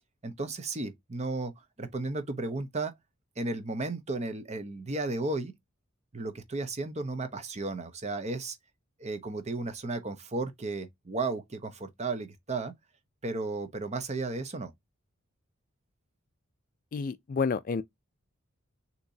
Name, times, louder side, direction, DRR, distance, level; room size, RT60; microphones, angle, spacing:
voice 1, 0.2-1.5 1.8-2.9 3.4-5.5 6.1-8.6 9.0-12.7 13.2-14.7, right 3 dB, 30° right, 0.8 m, -34 dB
voice 2, 16.9-17.8, left 5 dB, 40° left, 0.3 m, -29 dB
6.6 x 2.9 x 2.7 m
head